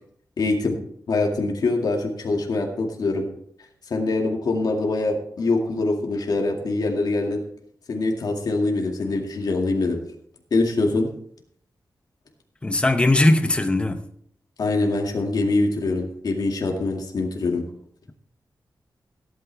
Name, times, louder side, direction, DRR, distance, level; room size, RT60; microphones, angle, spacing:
voice 1, 0.4-0.8 1.1-3.3 3.9-7.4 7.9-10.0 10.5-11.1 14.6-17.6, left 3 dB, 65° left, 2.2 m, -24 dB
voice 2, 12.6-14.0, left 2 dB, 15° left, 0.8 m, -19 dB
16.5 x 9.0 x 3.5 m
wide cardioid pair, 175°, 7 cm